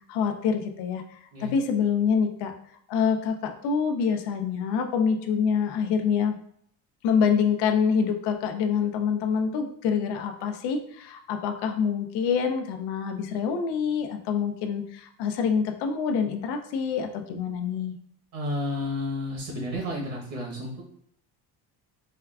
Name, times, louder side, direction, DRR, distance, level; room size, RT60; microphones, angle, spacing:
voice 1, 0.1-2.5 2.9-6.4 7.0-17.9, left 6 dB, 85° left, 5 dB, 0.5 m, -26 dB
voice 2, 18.3-20.8, left 1 dB, 60° right, -2 dB, 1.0 m, -31 dB
4.4 x 2.3 x 2.3 m, 0.67 s
cardioid pair, 145°, 39 cm